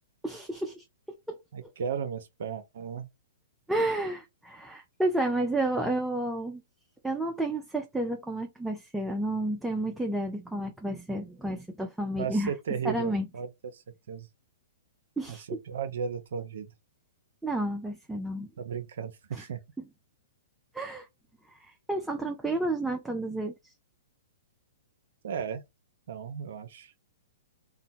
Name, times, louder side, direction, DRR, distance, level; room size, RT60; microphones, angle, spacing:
voice 1, 0.2-0.8 1.3-1.7 3.7-6.6 7.0-12.5 12.8-13.3 15.2-15.5 17.4-18.5 19.3-19.5 20.7-21.1 21.5-23.7, right 1 dB, 5° right, 0.4 m, -31 dB
voice 2, 1.5-3.1 12.2-13.8 14.1-14.3 15.5-16.7 18.6-19.6 25.2-25.6 26.1-26.9, right 7 dB, 65° right, 0.4 m, -35 dB
2.8 x 2.1 x 2.6 m
hypercardioid pair, 125°, 0 cm